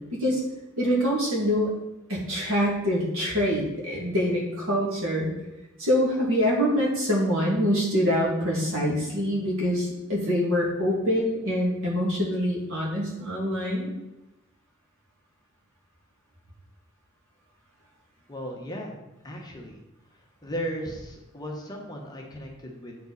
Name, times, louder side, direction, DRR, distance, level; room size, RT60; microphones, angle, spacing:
voice 1, 0.8-1.7 2.1-5.3 5.8-13.9, equal, 70° right, -3 dB, 2.2 m, -25 dB
voice 2, 18.3-19.0 19.2-19.8 20.4-23.0, equal, 20° left, -1 dB, 1.0 m, -36 dB
8.5 x 4.5 x 4.1 m, 0.98 s
head